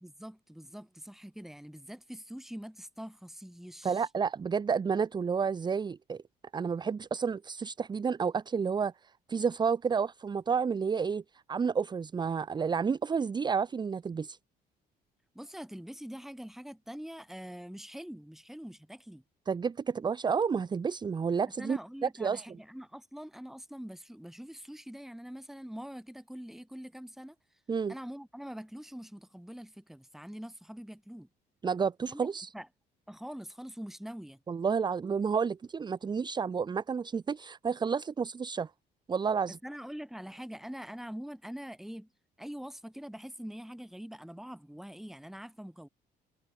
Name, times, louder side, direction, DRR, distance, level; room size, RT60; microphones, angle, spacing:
voice 1, 0.0-4.1 15.3-19.2 21.6-27.4 27.9-31.3 32.1-32.3 32.5-32.7 33.1-34.4 39.6-42.1 42.4-45.9, equal, ahead, 3.6 m, -44 dB
voice 2, 3.8-6.2 6.5-8.9 9.3-11.2 11.5-14.4 19.5-22.4 27.7-27.9 31.6-32.5 34.5-38.7 39.1-39.6, right 6 dB, 25° right, 0.8 m, -30 dB
cardioid pair, 110°, 17 cm